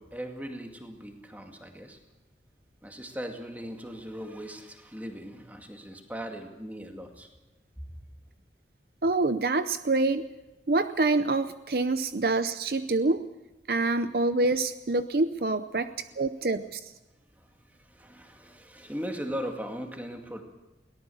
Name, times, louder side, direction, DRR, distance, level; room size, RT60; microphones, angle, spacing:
voice 1, 0.0-2.0 2.8-7.3 15.8-16.0 17.4-20.4, equal, 10° right, 3 dB, 2.2 m, -39 dB
voice 2, 9.0-10.2 10.7-13.2 13.7-16.8, right 3 dB, 55° right, 11 dB, 0.6 m, -26 dB
22.0 x 18.0 x 7.1 m, 1.1 s
head